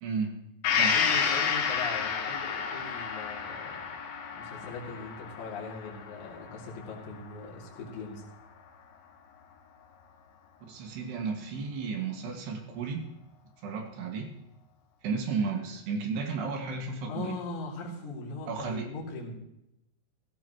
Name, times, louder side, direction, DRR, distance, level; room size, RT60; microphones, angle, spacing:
voice 1, 0.0-0.3 0.8-1.0 10.7-13.0 13.6-14.3 15.0-17.3 18.5-18.9, right 5 dB, 70° right, 3 dB, 3.8 m, -33 dB
Gong, 0.6-8.3 8.7-8.8, left 6 dB, 80° left, 3.6 m, -31 dB
voice 2, 0.9-3.7 4.3-8.2 17.1-19.3, left 3 dB, 50° left, -4 dB, 3.6 m, -40 dB
16.0 x 14.5 x 3.0 m, 0.84 s
omnidirectional pair, 5.1 m